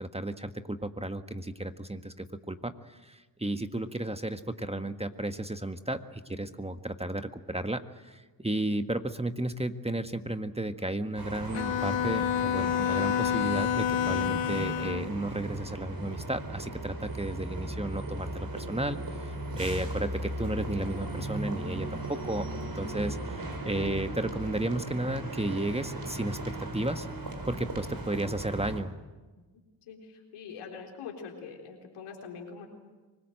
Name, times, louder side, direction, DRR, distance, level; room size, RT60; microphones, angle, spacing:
voice 1, 0.0-19.0 19.2-22.5 22.7-27.1 27.5-28.9, right 1 dB, 10° right, 8 dB, 1.5 m, -33 dB
sound 1, 11.2-28.8, right 2 dB, 45° right, 5.3 m, -37 dB
Bowed string instrument, 11.5-15.2, left 10 dB, 65° left, 0.9 m, -28 dB
voice 2, 29.9-32.7, left 6 dB, 85° left, 1 dB, 4.0 m, -44 dB
24.5 x 20.0 x 7.8 m, 1.2 s
supercardioid pair, 45°, 49 cm